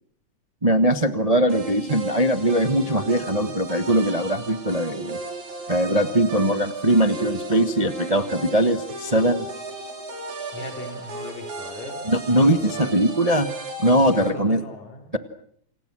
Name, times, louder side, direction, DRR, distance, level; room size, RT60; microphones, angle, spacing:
voice 1, 0.6-5.2 5.7-9.5 12.1-13.5 13.8-14.6, right 1 dB, 45° right, 9 dB, 0.4 m, -21 dB
sound 1, 1.5-14.3, right 2 dB, 75° right, 5.9 m, -35 dB
voice 2, 10.5-12.0 12.3-13.3 14.0-15.1, left 2 dB, 70° left, 4 dB, 4.8 m, -38 dB
29.5 x 27.5 x 6.3 m, 0.66 s
omnidirectional pair, 3.3 m